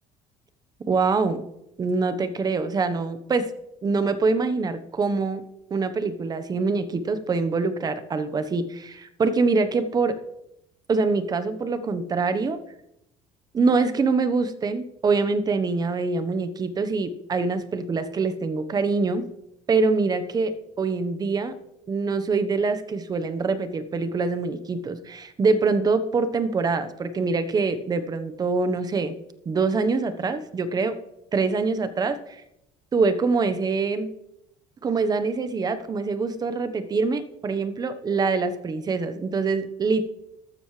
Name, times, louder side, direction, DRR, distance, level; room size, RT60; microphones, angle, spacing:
voice 1, 0.9-1.4 1.8-3.5 3.8-5.4 5.7-10.2 10.9-12.6 13.5-19.2 19.7-21.5 21.9-29.2 29.4-30.9 31.3-32.2 32.9-34.1 34.8-40.0, right 4 dB, 30° right, 10 dB, 1.2 m, -24 dB
13.0 x 13.0 x 3.3 m, 0.86 s
cardioid pair, 115°, 13 cm